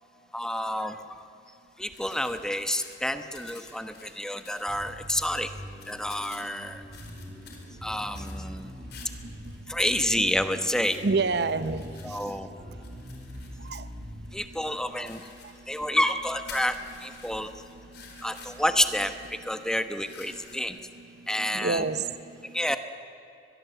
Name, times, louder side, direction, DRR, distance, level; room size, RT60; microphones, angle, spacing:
voice 1, 0.3-1.0 1.8-5.5 5.9-6.8 7.8-8.7 9.7-11.0 12.0-12.5 14.3-15.2 15.7-17.5 18.2-20.8 21.3-21.8 22.4-22.8, left 1 dB, 5° left, 8 dB, 1.1 m, -29 dB
sound 1, 1.9-20.6, left 5 dB, 65° left, 4.4 m, -51 dB
Bass guitar, 4.7-14.3, equal, 85° right, 7.6 m, -43 dB
voice 2, 11.0-12.2 13.7-13.8 14.7-14.8 21.4-22.1, right 4 dB, 65° right, 13 dB, 0.8 m, -27 dB
23.5 x 21.0 x 8.1 m, 2.8 s
head